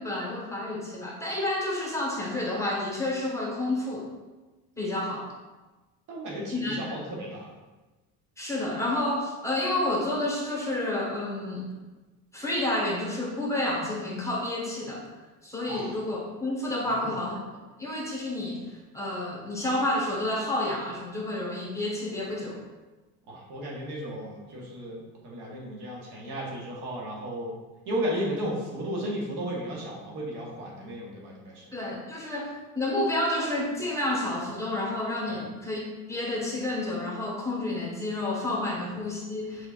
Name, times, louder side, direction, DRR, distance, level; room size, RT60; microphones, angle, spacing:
voice 1, 0.0-4.1 4.8-5.3 6.5-6.8 8.4-11.7 12.3-15.0 15.4-17.4 17.8-18.6 18.9-22.6 31.7-35.8 36.1-39.7, left 1 dB, 5° left, -4 dB, 1.4 m, -30 dB
voice 2, 6.1-7.5 15.7-16.0 17.0-17.2 23.3-27.5 27.8-31.6 35.3-35.4, equal, 60° right, -3 dB, 1.4 m, -34 dB
4.6 x 4.4 x 2.5 m, 1.2 s
supercardioid pair, 80°, 44 cm